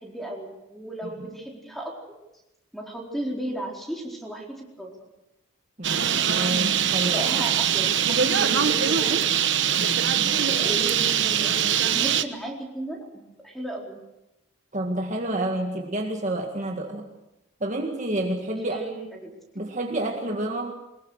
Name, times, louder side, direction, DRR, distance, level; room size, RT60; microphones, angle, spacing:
voice 1, 0.0-2.2 2.7-4.9 7.1-8.0 8.2-9.2 10.4-14.0 18.5-19.3, right 1 dB, ahead, -1 dB, 4.4 m, -35 dB
voice 2, 5.8-7.5 9.8-10.4 14.7-17.1 17.6-18.8 19.6-20.7, right 1 dB, 35° right, 2 dB, 1.9 m, -29 dB
Bird, 5.8-12.2, right 8 dB, 60° right, 1.2 m, -22 dB
23.5 x 21.0 x 6.5 m, 0.91 s
head